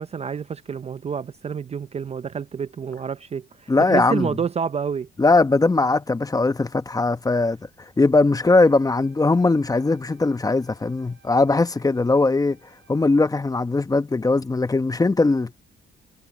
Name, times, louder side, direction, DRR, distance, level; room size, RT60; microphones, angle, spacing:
voice 1, 0.0-5.1, right 6 dB, 30° right, 0.5 m, -28 dB
voice 2, 3.7-4.3 5.2-7.6 8.0-12.6 12.9-15.6, left 3 dB, 20° left, 0.9 m, -20 dB
Wind instrument woodwind instrument, 8.4-13.3, right 7 dB, 70° right, 7.5 m, -59 dB
cardioid pair, 90°, 20 cm